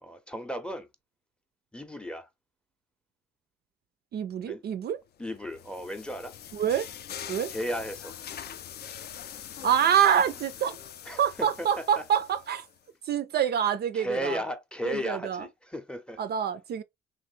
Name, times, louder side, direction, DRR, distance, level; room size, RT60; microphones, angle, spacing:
voice 1, 0.0-0.9 1.7-2.3 4.5-4.6 5.2-6.3 7.5-8.1 11.1-12.0 13.9-16.2, equal, 5° left, 0.6 m, -35 dB
voice 2, 4.1-5.0 6.5-6.9 7.3-7.5 9.6-10.8 11.2-12.7 13.1-14.4 14.8-15.5 16.2-16.8, right 9 dB, 55° right, 0.4 m, -26 dB
sound 1, 5.2-12.8, left 9 dB, 55° left, 0.4 m, -43 dB
3.1 x 2.5 x 3.1 m
cardioid pair, 90°, 20 cm